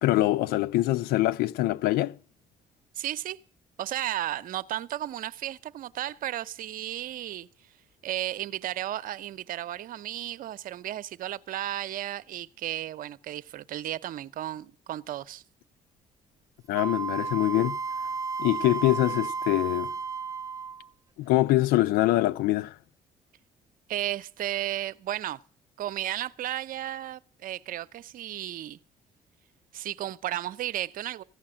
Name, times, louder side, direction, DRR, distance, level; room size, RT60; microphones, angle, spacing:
voice 1, 0.0-2.1 16.7-17.8 18.4-19.9 21.2-22.7, left 16 dB, 80° left, 0.5 m, -24 dB
voice 2, 2.9-3.4 3.8-7.5 8.0-15.4 23.9-25.4 25.8-28.8 29.7-31.2, right 13 dB, 65° right, 0.6 m, -34 dB
Wind instrument woodwind instrument, 16.7-20.9, right 5 dB, 20° right, 0.6 m, -33 dB
15.5 x 5.8 x 8.7 m
supercardioid pair, 70°, 15 cm